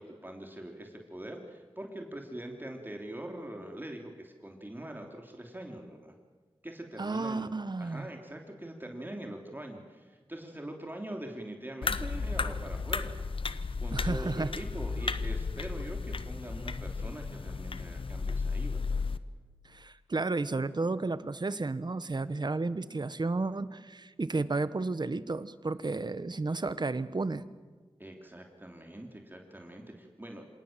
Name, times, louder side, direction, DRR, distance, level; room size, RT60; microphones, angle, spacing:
voice 1, 0.0-6.1 6.6-7.5 7.8-13.1 13.8-19.0 28.0-30.6, right 1 dB, 20° right, 2 dB, 3.3 m, -43 dB
voice 2, 7.0-8.1 13.9-14.5 19.7-27.4, right 3 dB, 50° right, 14 dB, 1.1 m, -32 dB
sound 1, 11.8-19.2, left 4 dB, 65° left, 0.9 m, -34 dB
27.0 x 18.0 x 7.5 m, 1.3 s
cardioid pair, 50°, 10 cm